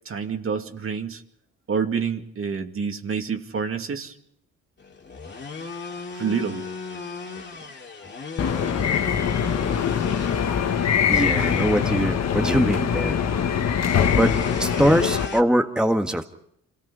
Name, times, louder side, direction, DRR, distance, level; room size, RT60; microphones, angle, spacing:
voice 1, 0.1-1.2 1.7-4.2 6.1-6.7 8.6-8.7, right 6 dB, 45° right, 5 dB, 2.2 m, -28 dB
sound 1, 4.8-15.4, left 4 dB, 35° left, 2.6 m, -37 dB
sound 2, 8.4-15.3, left 7 dB, 60° left, 1.7 m, -23 dB
voice 2, 10.5-13.2 14.2-14.3 14.6-16.2, equal, 5° right, 4 dB, 1.6 m, -22 dB
26.5 x 18.0 x 5.5 m, 0.72 s
cardioid pair, 90°, 30 cm